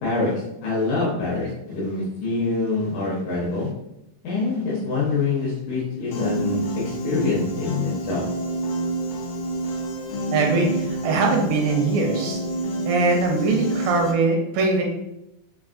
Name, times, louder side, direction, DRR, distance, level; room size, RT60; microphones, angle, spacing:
voice 1, 0.0-3.7 4.2-8.2, left 3 dB, 70° left, -6 dB, 1.8 m, -25 dB
Piano, 6.1-14.1, right 1 dB, 85° left, 1.6 m, -28 dB
voice 2, 10.3-12.4 12.9-14.8, right 3 dB, 85° right, 0 dB, 2.2 m, -21 dB
5.5 x 2.3 x 2.4 m, 0.85 s
omnidirectional pair, 4.0 m